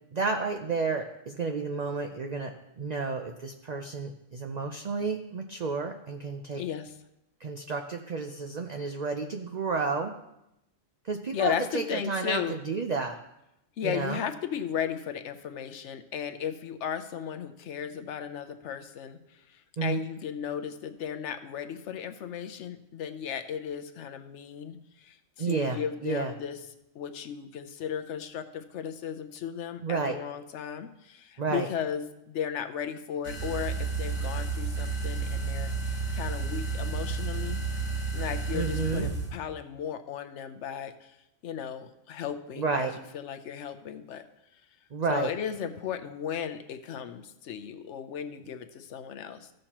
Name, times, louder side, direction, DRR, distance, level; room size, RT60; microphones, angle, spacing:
voice 1, 0.1-6.6 7.4-10.1 11.1-12.4 12.7-13.1 13.8-14.2 19.8-20.0 25.4-26.3 29.8-30.2 31.4-31.7 38.5-39.1 42.6-42.9 44.9-45.3, right 4 dB, 50° right, 4 dB, 0.5 m, -31 dB
voice 2, 6.6-7.0 11.3-12.6 13.8-26.6 26.9-37.6 38.1-41.2 41.4-44.2 45.1-49.5, left 8 dB, 65° left, 8 dB, 1.0 m, -35 dB
sound 1, 33.2-39.3, right 4 dB, 75° right, 2.3 m, -31 dB
15.0 x 6.5 x 2.9 m, 0.87 s
omnidirectional pair, 1.3 m